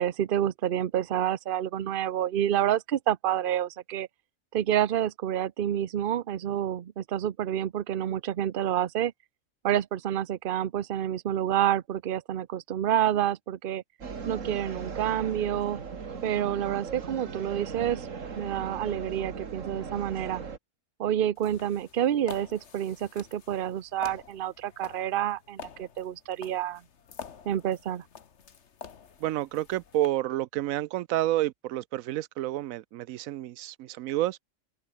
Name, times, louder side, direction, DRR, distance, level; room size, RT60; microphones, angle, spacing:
voice 1, 0.0-4.1 4.5-9.1 9.6-13.8 14.2-15.8 16.2-18.1 18.4-20.4 21.0-26.8 27.5-28.0, right 11 dB, 50° right, 0.8 m, -28 dB
sound 1, 14.0-20.6, right 5 dB, 70° right, 2.1 m, -38 dB
sound 2, 21.4-30.1, left 6 dB, 60° left, 1.5 m, -47 dB
voice 2, 29.2-34.4, right 14 dB, 85° right, 1.0 m, -29 dB
open air
omnidirectional pair, 1.4 m